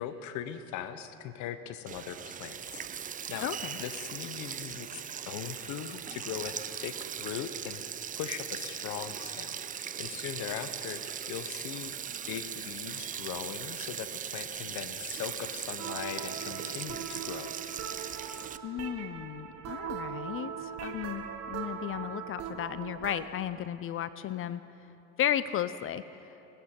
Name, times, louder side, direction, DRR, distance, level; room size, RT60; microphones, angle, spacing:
voice 1, 0.0-2.9 3.3-3.5 3.8-7.8 8.2-11.9 12.3-17.5, left 10 dB, 65° left, 11 dB, 0.9 m, -40 dB
Sink (filling or washing), 1.9-18.6, right 8 dB, 25° right, 0.4 m, -39 dB
voice 2, 3.4-3.8 18.6-24.6 25.2-26.0, left 11 dB, 40° left, 15 dB, 0.5 m, -34 dB
sound 1, 15.8-23.2, right 8 dB, 50° right, 1.1 m, -40 dB
19.0 x 8.4 x 4.4 m, 3.0 s
hypercardioid pair, 70°, 33 cm